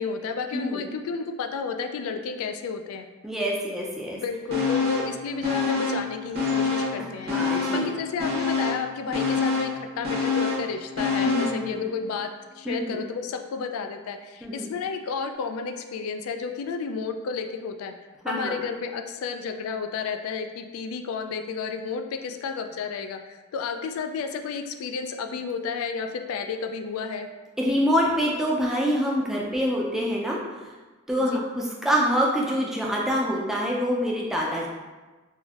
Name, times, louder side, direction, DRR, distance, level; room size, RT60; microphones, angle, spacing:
voice 1, 0.0-3.1 4.1-7.4 7.7-12.3 12.6-17.9 18.3-27.3 31.3-31.4, left 5 dB, 90° left, 9 dB, 0.3 m, -32 dB
voice 2, 0.5-0.8 3.2-4.2 7.0-7.9 11.2-11.8 12.7-13.0 14.4-14.7 18.2-18.6 27.6-30.4 31.1-34.7, equal, ahead, -4 dB, 0.4 m, -26 dB
sound 1, 4.5-5.2 5.4-7.0 7.3-11.6 12.0-12.1, left 4 dB, 45° right, 0.7 m, -26 dB
3.4 x 2.5 x 2.4 m, 1.2 s
head